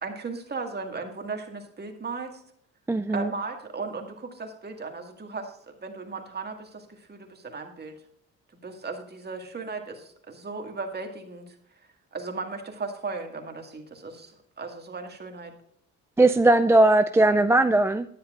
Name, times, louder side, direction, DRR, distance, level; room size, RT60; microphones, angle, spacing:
voice 1, 0.0-2.4 3.1-8.0 8.6-11.6 12.1-15.5, right 4 dB, 35° right, 3 dB, 1.9 m, -36 dB
voice 2, 2.9-3.3 16.2-18.1, right 2 dB, 10° right, 9 dB, 0.3 m, -19 dB
10.0 x 9.8 x 2.5 m, 0.68 s
cardioid pair, 90°, 30 cm